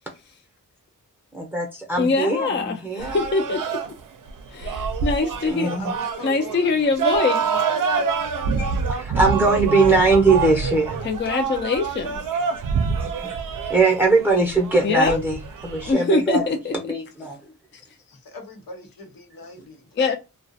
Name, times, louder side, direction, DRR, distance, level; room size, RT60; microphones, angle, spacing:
voice 1, 1.3-3.2 5.5-5.9 8.6-11.0 13.0-13.4 13.7-17.4, right 3 dB, 5° right, 0.6 m, -21 dB
voice 2, 2.0-3.8 4.5-5.7 6.2-7.4 11.0-12.2 14.8-15.2 15.9-16.7 20.0-20.1, left 4 dB, 35° left, 0.4 m, -23 dB
sound 1, 3.0-15.9, right 5 dB, 65° right, 0.5 m, -26 dB
voice 3, 5.8-6.7 7.3-8.1 18.2-20.1, left 4 dB, 85° left, 1.0 m, -40 dB
2.3 x 2.1 x 2.6 m
wide cardioid pair, 135°, 34 cm